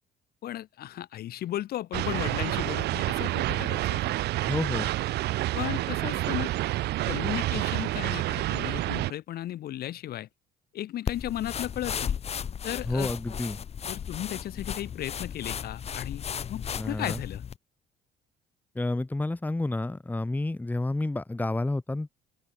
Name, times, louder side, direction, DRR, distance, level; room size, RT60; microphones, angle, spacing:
voice 1, 0.4-4.0 5.5-6.5 7.1-10.3 10.7-12.2 12.6-13.1 13.9-16.2 16.5-17.4, left 13 dB, 65° left, 4.6 m, -35 dB
sound 1, 1.9-9.1, right 16 dB, 80° right, 2.9 m, -28 dB
voice 2, 4.5-4.9 12.9-13.6 16.8-17.2 18.8-22.1, left 2 dB, 10° left, 1.7 m, -30 dB
sound 2, 11.1-17.6, left 8 dB, 40° left, 1.1 m, -35 dB
open air
cardioid pair, 110°, 17 cm